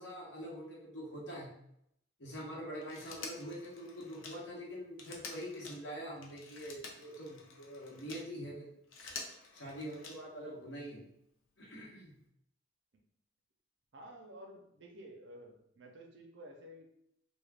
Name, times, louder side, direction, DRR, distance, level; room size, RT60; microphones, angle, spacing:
voice 1, 0.0-1.5 2.2-8.8 9.5-11.0 11.6-12.1, equal, 60° left, -4 dB, 0.9 m, -44 dB
Telephone, 2.8-8.3 8.7-10.5 11.8-11.9, left 4 dB, 85° left, 0.5 m, -49 dB
voice 2, 13.9-17.0, equal, 60° right, 1 dB, 0.5 m, -52 dB
2.4 x 2.2 x 3.3 m, 0.75 s
head